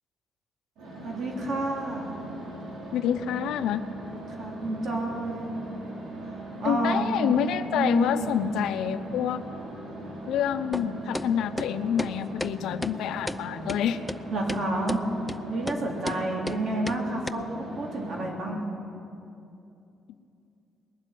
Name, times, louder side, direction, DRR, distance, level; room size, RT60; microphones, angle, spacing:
sound 1, 0.8-18.2, right 1 dB, 80° right, 3.9 m, -40 dB
voice 1, 1.0-2.2 4.4-5.5 6.3-7.3 7.7-8.6 14.3-15.0 15.5-18.7, right 2 dB, 60° right, -1 dB, 3.2 m, -30 dB
voice 2, 2.9-3.8 6.6-9.4 10.3-14.0, left 9 dB, 85° left, 10 dB, 0.7 m, -27 dB
sound 2, 10.7-10.9 11.1-11.3 11.6-11.7 12.0-12.1 12.4-12.5 12.8-12.9 13.3-13.4 13.7-13.8 14.1-14.2 14.5-14.6 14.9-15.0 15.3-15.4 15.7-15.8 16.0-16.2 16.5-16.6 16.9-17.0 17.3-17.4, left 1 dB, 5° left, 0.4 m, -32 dB
20.0 x 7.6 x 9.3 m, 2.7 s
cardioid pair, 90°, 0 cm